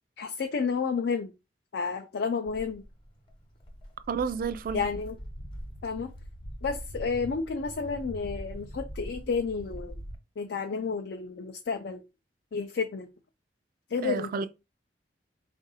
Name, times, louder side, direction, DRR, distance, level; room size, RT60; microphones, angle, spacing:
voice 1, 0.2-1.3 1.7-2.8 4.7-5.2 5.8-6.1 6.6-10.0 10.4-12.0 12.5-13.1 13.9-14.5, left 5 dB, 70° left, 0.4 m, -31 dB
Walk footsteps, 2.5-10.2, equal, 30° left, 0.9 m, -42 dB
voice 2, 4.1-4.8 14.0-14.5, right 5 dB, 50° right, 0.3 m, -30 dB
3.6 x 2.5 x 4.0 m
head